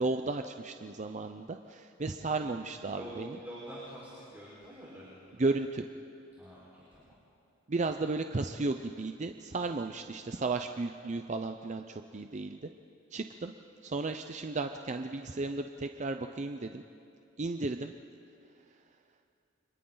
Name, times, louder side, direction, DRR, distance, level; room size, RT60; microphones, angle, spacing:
voice 1, 0.0-3.4 5.4-5.9 7.7-12.7 13.1-13.5 13.8-16.8 17.4-17.9, right 3 dB, 35° right, 6 dB, 0.6 m, -34 dB
voice 2, 2.2-5.4 6.4-7.1, right 1 dB, 10° right, -8 dB, 4.5 m, -47 dB
30.0 x 25.5 x 3.9 m, 2.6 s
head